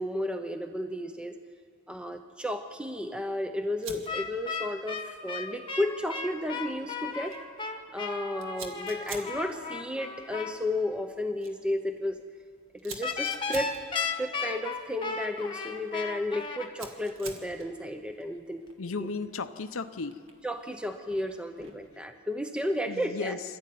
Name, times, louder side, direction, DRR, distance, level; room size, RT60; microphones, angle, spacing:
voice 1, 0.0-1.4 1.9-7.4 7.9-12.2 12.8-18.7 19.0-19.1 20.4-23.4, left 1 dB, 5° right, 6 dB, 0.7 m, -33 dB
Fire, 3.8-22.0, right 4 dB, 60° right, 1.9 m, -50 dB
sound 1, 4.1-10.5 13.0-16.7, left 5 dB, 25° left, 1.2 m, -35 dB
voice 2, 18.8-20.2 22.9-23.6, left 4 dB, 65° left, 10 dB, 0.7 m, -35 dB
24.0 x 13.0 x 9.3 m, 2.2 s
head